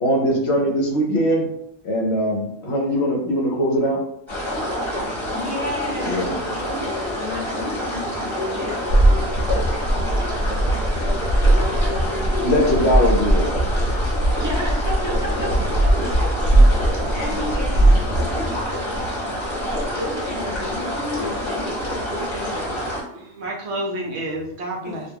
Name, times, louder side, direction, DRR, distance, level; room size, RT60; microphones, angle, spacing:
voice 1, 0.0-1.5 1.8-4.0 6.0-6.3 12.4-13.4, equal, 65° left, 0 dB, 0.8 m, -21 dB
sound 1, 4.3-23.0, equal, 25° left, 1.1 m, -27 dB
voice 2, 5.2-10.0 10.9-13.0 14.4-16.3 16.7-18.0 18.3-19.1 19.5-22.7 24.8-24.9, left 2 dB, 15° right, -6 dB, 0.7 m, -33 dB
sound 2, 8.9-19.1, right 1 dB, 90° right, 0.3 m, -19 dB
voice 3, 23.1-25.1, right 1 dB, 65° right, -1 dB, 0.8 m, -29 dB
2.3 x 2.2 x 3.2 m, 0.74 s
omnidirectional pair, 1.3 m